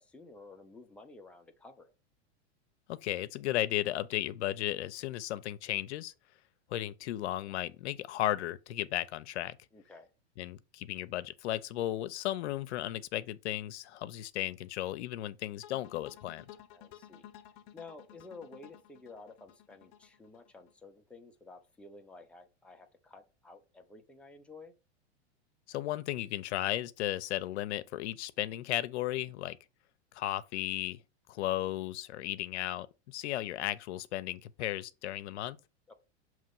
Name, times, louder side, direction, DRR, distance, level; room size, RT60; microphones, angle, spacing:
voice 1, 0.0-1.9 9.7-10.1 16.7-17.3 17.7-24.7 35.9-36.0, left 3 dB, 5° left, 0.7 m, -52 dB
voice 2, 2.9-6.1 6.7-9.6 10.4-16.4 25.7-29.6 30.1-31.0 31.3-35.6, left 14 dB, 75° left, 0.6 m, -35 dB
sound 1, 15.6-20.7, left 11 dB, 50° left, 0.9 m, -54 dB
6.5 x 3.1 x 5.4 m
supercardioid pair, 130°, 34 cm